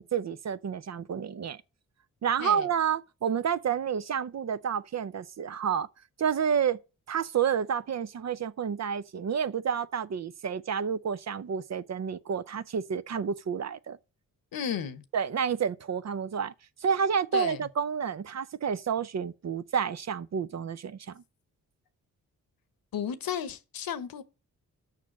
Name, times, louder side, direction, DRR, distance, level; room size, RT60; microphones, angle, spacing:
voice 1, 0.0-1.6 2.2-5.9 6.2-6.8 7.1-14.0 15.1-16.5 16.8-21.2, right 7 dB, 50° right, 0.6 m, -29 dB
voice 2, 14.5-15.0 17.3-17.6 22.9-24.2, left 8 dB, 75° left, 1.0 m, -33 dB
6.6 x 5.9 x 6.0 m
cardioid pair, 55°, 35 cm